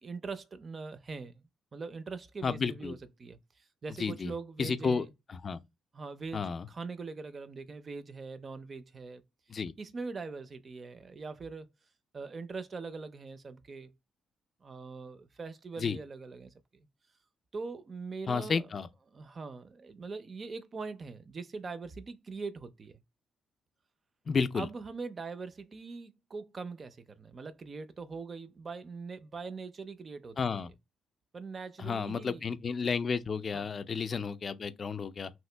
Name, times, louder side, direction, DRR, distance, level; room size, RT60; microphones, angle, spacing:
voice 1, 0.0-5.1 5.9-9.2 9.8-11.7 12.1-13.9 14.6-16.9 17.5-18.7 19.1-23.0 24.5-30.7 31.3-32.5 33.5-33.7, right 4 dB, 40° right, 0.4 m, -42 dB
voice 2, 2.4-3.0 4.0-4.3 4.6-5.0 5.3-5.6 6.3-6.7 9.5-9.7 15.8-16.0 18.3-18.9 24.3-24.7 30.4-30.7 31.8-35.3, left 5 dB, 40° left, 0.4 m, -32 dB
2.9 x 2.5 x 3.2 m
cardioid pair, 90°, 0 cm